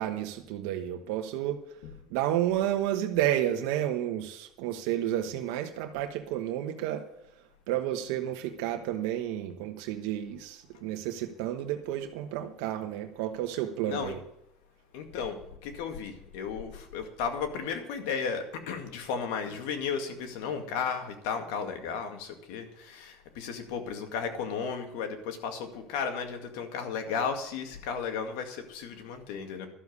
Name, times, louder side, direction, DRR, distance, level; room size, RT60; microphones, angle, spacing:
voice 1, 0.0-1.6 2.1-7.0 7.7-14.2, right 12 dB, 80° right, 5 dB, 1.2 m, -31 dB
voice 2, 14.9-29.7, left 6 dB, 80° left, 6 dB, 2.1 m, -34 dB
12.5 x 7.3 x 8.2 m, 0.79 s
cardioid pair, 125°, 0 cm